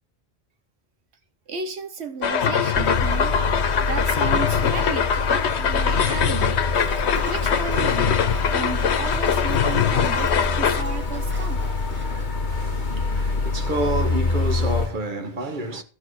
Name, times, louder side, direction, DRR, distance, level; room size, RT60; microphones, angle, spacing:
voice 1, 1.5-3.4 3.8-6.6 7.0-11.7 12.3-12.9, right 5 dB, 85° right, 1.3 m, -34 dB
sound 1, 2.2-10.8, left 7 dB, 90° left, 1.1 m, -23 dB
sound 2, 2.7-14.9, left 3 dB, 50° left, 1.2 m, -26 dB
Walk footsteps, 6.7-12.2, equal, 10° right, 1.2 m, -36 dB
voice 2, 12.3-15.8, right 1 dB, 50° right, 1.5 m, -29 dB
14.5 x 4.9 x 6.3 m
omnidirectional pair, 1.1 m